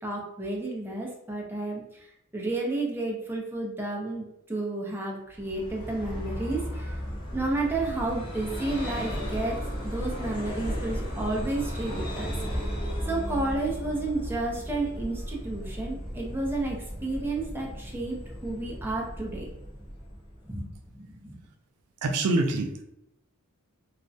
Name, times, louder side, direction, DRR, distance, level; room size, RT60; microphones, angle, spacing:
voice 1, 0.0-7.0 7.3-9.6 9.8-12.7 13.0-19.5 20.5-21.4, right 2 dB, 10° right, -2 dB, 0.5 m, -32 dB
Vehicle, 5.3-20.8, equal, 25° left, 0.8 m, -35 dB
voice 2, 22.0-22.8, right 2 dB, 90° right, 6 dB, 0.3 m, -25 dB
2.4 x 2.0 x 2.5 m, 0.82 s
head